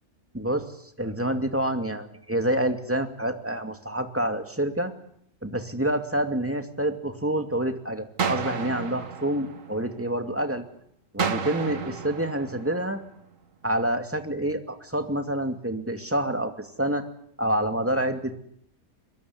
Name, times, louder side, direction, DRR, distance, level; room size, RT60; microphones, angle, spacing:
voice 1, 0.3-0.6 1.0-4.9 5.4-10.6 11.1-13.0 13.6-17.1 17.4-18.3, right 1 dB, 10° right, 7 dB, 2.4 m, -27 dB
sound 1, 8.2-10.2 11.2-13.2, right 6 dB, 60° right, 1.8 m, -32 dB
24.0 x 21.0 x 9.7 m, 0.67 s
omnidirectional pair, 1.6 m